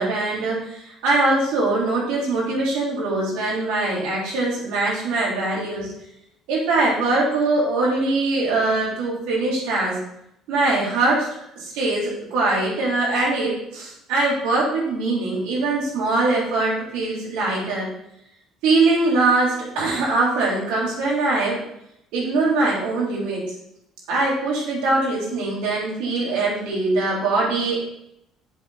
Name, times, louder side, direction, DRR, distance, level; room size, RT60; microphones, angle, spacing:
voice 1, 0.0-5.9 6.5-10.0 10.5-11.3 11.6-17.9 18.6-21.6 22.1-23.4 24.1-27.7, right 2 dB, 70° right, -4 dB, 3.5 m, -22 dB
7.6 x 7.5 x 4.0 m, 0.78 s
hypercardioid pair, 55°, 0 cm